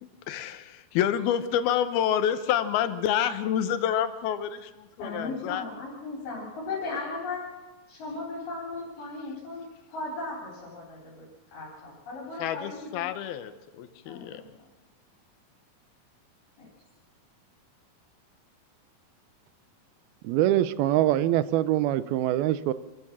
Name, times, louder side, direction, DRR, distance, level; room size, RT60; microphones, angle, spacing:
voice 1, 0.0-5.7 12.4-14.4, left 9 dB, 85° left, 11 dB, 2.9 m, -28 dB
voice 2, 5.0-7.5 7.9-9.6 9.9-11.3 11.5-13.1 14.1-14.5 16.6-16.7, left 3 dB, 65° left, -4 dB, 5.4 m, -37 dB
voice 3, 20.2-22.7, right 13 dB, 85° right, 15 dB, 2.7 m, -24 dB
26.5 x 14.5 x 7.3 m, 1.2 s
omnidirectional pair, 4.2 m